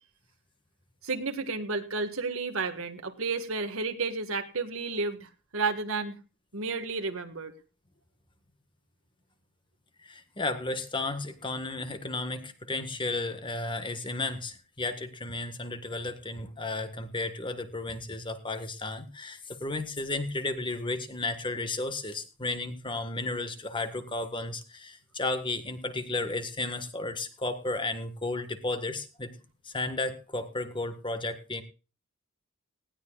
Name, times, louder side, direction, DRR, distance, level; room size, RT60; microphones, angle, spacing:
voice 1, 1.0-6.2 6.5-7.5, right 4 dB, 70° right, 5 dB, 1.9 m, -32 dB
voice 2, 10.0-29.3 29.6-31.6, left 2 dB, 20° left, 9 dB, 1.6 m, -33 dB
19.0 x 16.5 x 2.5 m, 0.34 s
head